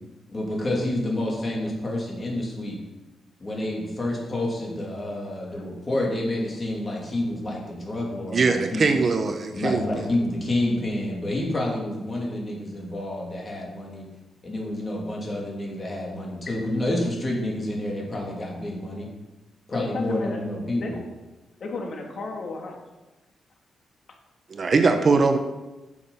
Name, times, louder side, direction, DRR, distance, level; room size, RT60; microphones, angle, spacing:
voice 1, 0.3-2.8 3.4-9.0 9.5-14.0 14.4-19.1 19.7-21.0, left 1 dB, 25° left, 2.8 m, -29 dB
voice 2, 8.3-9.8 24.5-25.4, right 4 dB, 40° right, 0.8 m, -21 dB
voice 3, 19.7-20.4 20.7-20.9 21.6-22.8, left 3 dB, 50° left, 1.7 m, -33 dB
9.9 x 6.9 x 5.6 m
wide cardioid pair, 145°, 0 cm